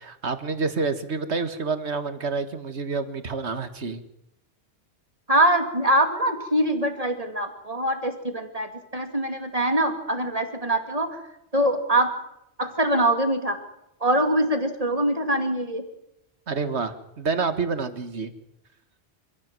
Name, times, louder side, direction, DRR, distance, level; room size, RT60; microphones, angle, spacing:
voice 1, 0.0-4.0 16.5-18.3, right 4 dB, 80° right, 10 dB, 1.9 m, -28 dB
voice 2, 5.3-11.2 11.5-12.1 12.6-13.6 14.0-15.8, right 1 dB, 35° right, 6 dB, 2.6 m, -23 dB
26.5 x 16.0 x 7.7 m, 0.82 s
omnidirectional pair, 1.1 m